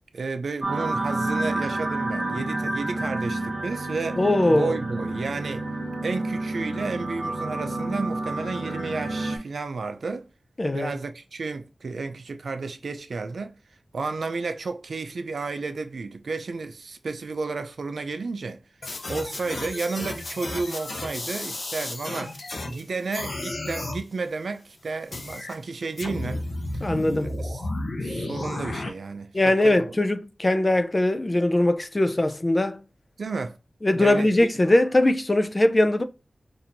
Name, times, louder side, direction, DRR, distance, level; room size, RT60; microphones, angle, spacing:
voice 1, 0.1-4.2 4.5-5.7 6.0-10.2 10.7-13.5 13.9-18.6 19.1-22.4 22.7-26.4 27.2-27.6 28.0-29.9 33.2-33.6 33.9-34.5, right 4 dB, 85° right, 0.5 m, -32 dB
sound 1, 0.6-9.4, right 2 dB, 60° right, 1.2 m, -29 dB
voice 2, 4.2-4.8 10.6-10.9 26.8-27.3 29.3-32.8 33.8-36.0, left 1 dB, 35° left, 0.4 m, -21 dB
sound 2, 18.8-22.8 23.1-24.0 25.1-25.5 26.0-28.9, left 2 dB, 75° left, 0.7 m, -33 dB
4.3 x 2.6 x 2.6 m
cardioid pair, 55°, 0 cm